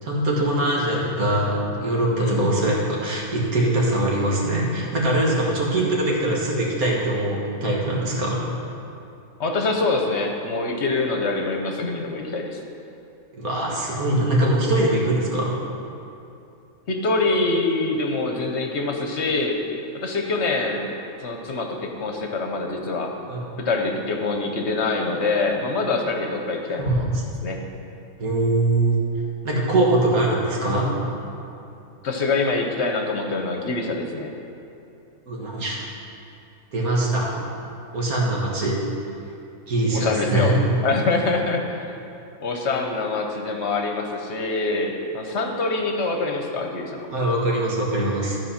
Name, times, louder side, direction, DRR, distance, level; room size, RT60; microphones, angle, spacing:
voice 1, 0.0-8.5 13.3-15.6 23.3-23.4 26.8-27.2 28.2-29.0 29.4-30.9 35.3-35.8 36.7-37.3 37.9-38.8 39.7-40.6 47.1-48.4, right 1 dB, 85° right, -3 dB, 2.0 m, -22 dB
voice 2, 2.2-2.5 9.4-12.6 16.9-19.6 19.9-20.9 21.2-23.1 23.6-27.0 27.4-27.6 32.0-34.3 39.9-40.5 40.8-41.9 42.4-47.1, left 3 dB, 55° left, 2 dB, 1.0 m, -25 dB
12.5 x 4.7 x 5.7 m, 2.7 s
omnidirectional pair, 1.5 m